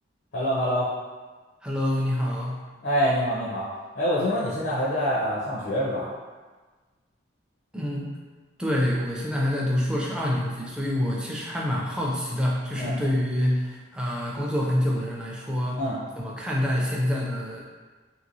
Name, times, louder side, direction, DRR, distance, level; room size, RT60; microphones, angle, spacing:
voice 1, 0.3-0.9 2.8-3.7 4.0-6.1 12.8-12.9 15.8-16.0, equal, 65° left, -7 dB, 0.6 m, -25 dB
voice 2, 1.6-2.6 7.7-8.2 8.6-15.8 16.2-17.7, left 1 dB, 5° right, -4 dB, 0.3 m, -26 dB
3.2 x 2.9 x 2.5 m, 1.3 s
head